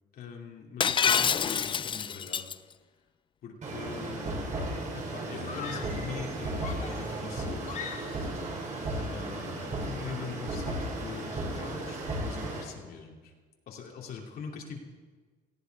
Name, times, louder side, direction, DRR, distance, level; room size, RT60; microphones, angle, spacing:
voice 1, 0.1-2.4 3.4-4.6 4.9-7.7 8.9-13.3 13.7-14.8, left 6 dB, 65° left, 0 dB, 2.8 m, -42 dB
Shatter, 0.8-2.5, left 7 dB, 30° left, 0.4 m, -26 dB
sound 1, 3.6-12.6, right 2 dB, 45° right, 5.1 m, -35 dB
Screaming, 5.4-6.1 6.6-8.4, left 7 dB, 45° left, 1.7 m, -42 dB
18.0 x 14.5 x 4.7 m, 1.4 s
cardioid pair, 110°, 17 cm